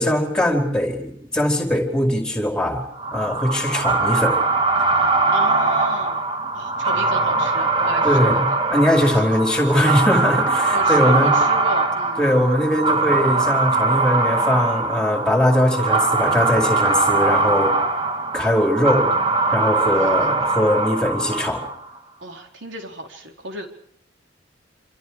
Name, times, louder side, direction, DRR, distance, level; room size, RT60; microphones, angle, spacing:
voice 1, 0.0-2.8 3.1-4.4 8.0-11.3 12.2-17.7 18.3-19.1 19.5-21.7, left 1 dB, 5° left, 2 dB, 4.8 m, -20 dB
sound 1, 3.0-21.9, right 3 dB, 30° right, 2.2 m, -21 dB
voice 2, 5.3-6.2 6.5-8.4 9.1-9.3 9.7-10.0 10.7-12.2 19.9-20.4 22.2-23.7, right 1 dB, 70° right, 3 dB, 4.4 m, -32 dB
28.5 x 26.5 x 5.0 m, 0.65 s
head